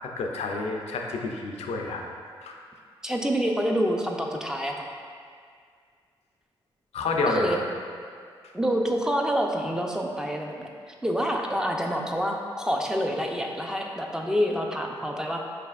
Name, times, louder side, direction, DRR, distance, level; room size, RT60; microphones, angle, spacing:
voice 1, 0.0-2.0 2.4-2.6 6.9-7.6, left 3 dB, 70° left, 1 dB, 0.5 m, -29 dB
voice 2, 3.0-4.9 7.3-7.6 8.5-15.4, equal, 5° right, 1 dB, 0.5 m, -27 dB
4.9 x 3.3 x 2.4 m, 2.1 s
supercardioid pair, 45°, 11 cm